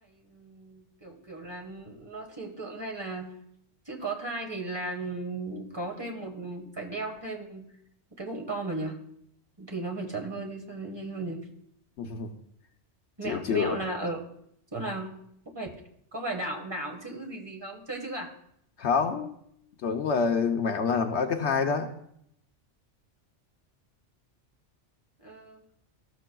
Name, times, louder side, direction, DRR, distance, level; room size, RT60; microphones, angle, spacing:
voice 1, 0.0-3.3 3.8-7.7 8.2-9.0 9.6-11.4 13.2-14.2 14.7-15.1 15.5-15.7 16.1-18.3 25.2-25.6, right 2 dB, 20° right, 2 dB, 1.3 m, -35 dB
voice 2, 12.0-12.3 13.2-13.8 18.8-19.4 19.8-21.9, left 5 dB, 70° left, 4 dB, 0.9 m, -27 dB
14.5 x 6.6 x 2.2 m, 0.72 s
omnidirectional pair, 1.2 m